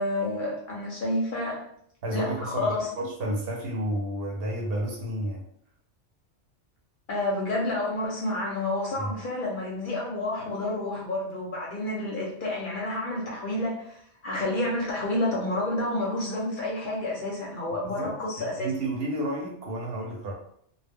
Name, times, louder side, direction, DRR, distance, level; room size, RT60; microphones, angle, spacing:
voice 1, 0.0-1.7 2.1-2.9 7.1-18.7, left 1 dB, 55° left, -3 dB, 0.6 m, -29 dB
voice 2, 2.0-5.4 9.0-9.1 17.8-20.3, right 1 dB, 60° right, -1 dB, 0.8 m, -31 dB
2.1 x 2.0 x 3.4 m, 0.66 s
omnidirectional pair, 1.2 m